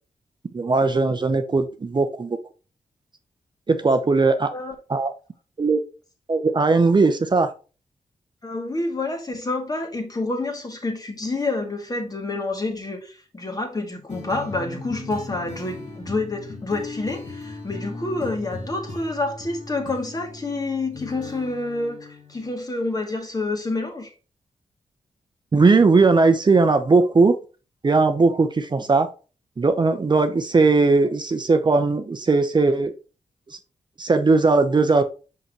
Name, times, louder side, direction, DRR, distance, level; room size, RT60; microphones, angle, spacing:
voice 1, 0.5-2.4 3.7-4.5 4.9-5.1 5.6-5.8 6.3-7.5 25.5-27.3 27.8-29.1 29.6-32.9 33.5-33.6 34.0-35.0, right 3 dB, 35° right, 0.7 m, -18 dB
voice 2, 8.4-24.1, left 2 dB, 30° left, 2.0 m, -28 dB
sound 1, 14.1-22.5, left 3 dB, 65° left, 2.9 m, -37 dB
5.9 x 5.5 x 3.0 m
cardioid pair, 75°, 13 cm